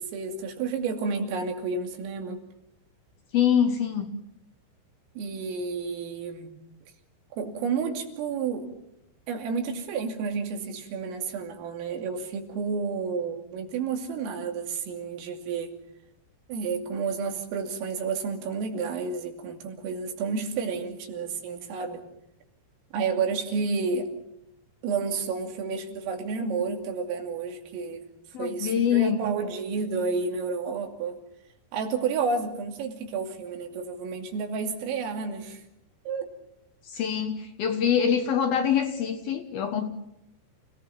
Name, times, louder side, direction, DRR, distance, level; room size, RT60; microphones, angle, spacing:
voice 1, 0.0-2.4 5.2-6.5 7.3-8.7 9.3-15.8 16.5-22.1 22.9-24.1 24.8-28.1 28.4-31.2 31.7-35.7 36.1-36.3, right 5 dB, 90° right, 3 dB, 5.3 m, -31 dB
voice 2, 3.3-4.1 28.3-29.2 36.9-39.9, left 8 dB, 65° left, 6 dB, 2.5 m, -24 dB
29.0 x 18.0 x 7.0 m, 0.81 s
omnidirectional pair, 5.7 m